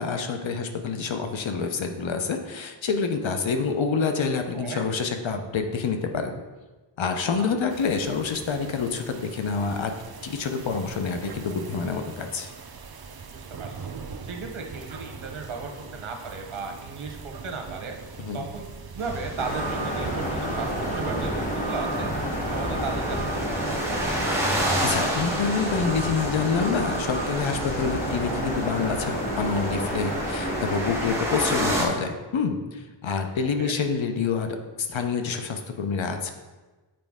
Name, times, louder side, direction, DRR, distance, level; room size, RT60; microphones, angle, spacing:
voice 1, 0.0-6.3 7.0-9.9 10.2-12.5 18.2-18.5 24.8-36.3, left 5 dB, 70° left, 6 dB, 0.7 m, -27 dB
sound 1, 7.7-25.1, right 5 dB, 50° right, 0.6 m, -41 dB
voice 2, 13.2-13.8 14.2-18.0 18.3-18.7 18.9-22.1 22.5-24.2 33.6-33.7, right 4 dB, 85° right, 3 dB, 1.0 m, -36 dB
sound 2, 19.0-31.8, equal, 5° right, 1.2 m, -31 dB
sound 3, 19.4-31.2, equal, 15° left, 1.2 m, -30 dB
7.7 x 4.3 x 3.6 m, 1.2 s
wide cardioid pair, 85°, 48 cm